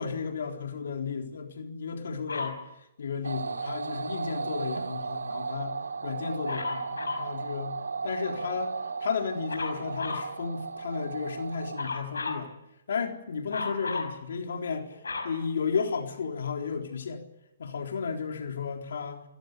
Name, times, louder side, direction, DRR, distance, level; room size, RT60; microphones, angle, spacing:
voice 1, 0.0-2.6 3.0-5.8 6.0-7.8 8.0-8.7 9.0-12.5 12.9-14.9 15.2-17.2 17.6-19.2, left 5 dB, 70° left, 3 dB, 4.0 m, -33 dB
Dog, 2.3-2.6 6.5-7.3 9.5-10.3 11.8-12.5 13.5-14.2 14.7-16.2 16.9-17.0, left 3 dB, 90° left, 5.9 m, -34 dB
sound 1, 3.2-11.9, right 4 dB, 90° right, 1.2 m, -35 dB
29.5 x 16.5 x 8.4 m, 0.85 s
hypercardioid pair, 135°, 0 cm